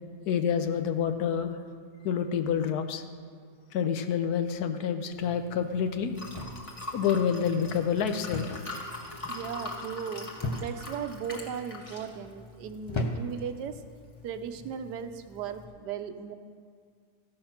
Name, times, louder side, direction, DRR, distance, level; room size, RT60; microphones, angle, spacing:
voice 1, 0.3-1.6 2.0-3.0 3.7-6.1 6.9-8.9, left 7 dB, 70° left, 8 dB, 1.2 m, -28 dB
Liquid, 5.1-15.6, left 2 dB, 20° left, 1.3 m, -43 dB
sound 1, 6.3-6.9 8.3-8.7 9.0-9.4 10.4-11.0 11.7-12.1 12.9-13.5 14.5-14.7, left 1 dB, 40° left, 0.4 m, -34 dB
voice 2, 9.3-10.3 10.6-13.8 14.2-16.4, right 7 dB, 80° right, 9 dB, 1.3 m, -37 dB
14.0 x 6.5 x 5.8 m, 2.2 s
omnidirectional pair, 1.8 m